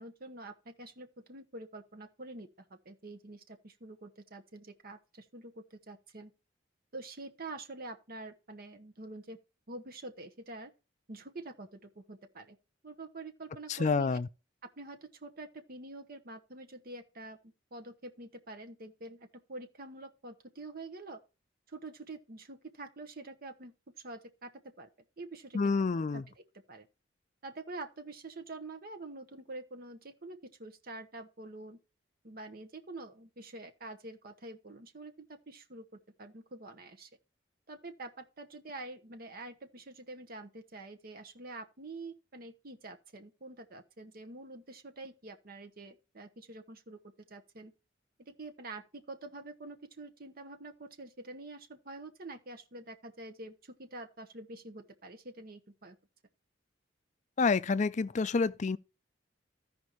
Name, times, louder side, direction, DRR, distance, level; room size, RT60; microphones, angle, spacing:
voice 1, 0.0-6.3 6.9-9.4 9.7-10.7 11.1-12.6 12.8-14.2 14.6-21.2 21.7-23.7 24.0-24.9 25.2-26.4 26.7-26.9 27.4-31.8 32.2-37.1 37.7-47.0 47.3-47.7 48.3-56.0, right 2 dB, 50° right, 1.0 m, -46 dB
voice 2, 13.8-14.2 25.5-26.2 57.4-58.8, left 4 dB, 40° left, 0.4 m, -28 dB
15.0 x 5.2 x 3.0 m
head